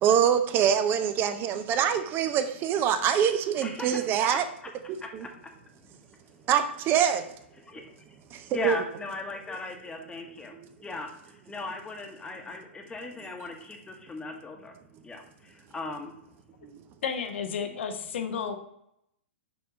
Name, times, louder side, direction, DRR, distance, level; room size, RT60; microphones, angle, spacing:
voice 1, 0.0-4.4 5.1-5.3 6.5-7.2 8.3-8.8 10.5-10.6 16.6-16.7, right 8 dB, 30° right, 9 dB, 0.5 m, -24 dB
voice 2, 3.6-4.1 5.0-5.3 5.8-6.0 7.7-7.9 8.5-14.8 15.0-16.1, left 3 dB, 10° left, 3 dB, 1.1 m, -38 dB
voice 3, 17.0-18.6, left 6 dB, 65° left, 6 dB, 0.9 m, -32 dB
6.0 x 3.6 x 5.0 m, 0.75 s
hypercardioid pair, 115°, 7 cm